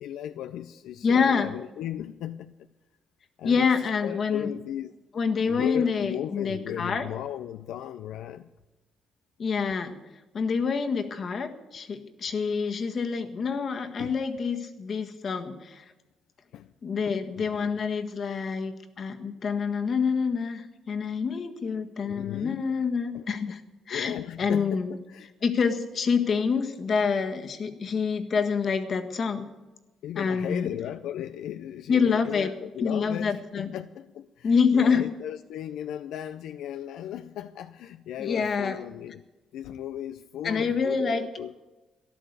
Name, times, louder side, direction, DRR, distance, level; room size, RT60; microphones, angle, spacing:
voice 1, 0.0-2.6 3.4-4.9 5.5-8.5 14.0-14.2 16.5-16.7 17.1-17.8 22.0-22.6 23.1-23.3 23.9-25.3 30.0-39.2 39.5-41.5, left 11 dB, 85° left, 0.5 m, -36 dB
voice 2, 1.0-1.5 3.4-4.5 5.1-7.1 9.4-9.9 10.3-15.8 16.8-24.9 25.4-29.5 30.1-30.7 31.9-32.5 32.8-33.7 34.4-35.0 38.2-38.8 40.4-41.3, left 5 dB, 50° left, 1.6 m, -27 dB
13.5 x 11.0 x 8.2 m
cardioid pair, 90°, 0 cm